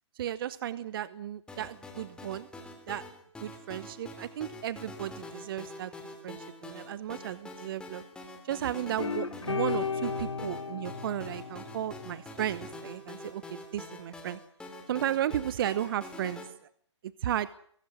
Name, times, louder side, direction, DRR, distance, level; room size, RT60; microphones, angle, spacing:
voice 1, 0.1-2.5 2.9-3.0 3.4-5.9 6.2-8.0 8.4-14.4 14.9-16.4 17.2-17.5, right 11 dB, 50° right, 16 dB, 1.0 m, -34 dB
sound 1, 1.5-16.5, left 2 dB, 5° left, 3.2 m, -46 dB
sound 2, 9.0-12.5, left 5 dB, 90° left, 2.6 m, -34 dB
23.0 x 12.0 x 9.8 m, 0.62 s
hypercardioid pair, 140°, 15 cm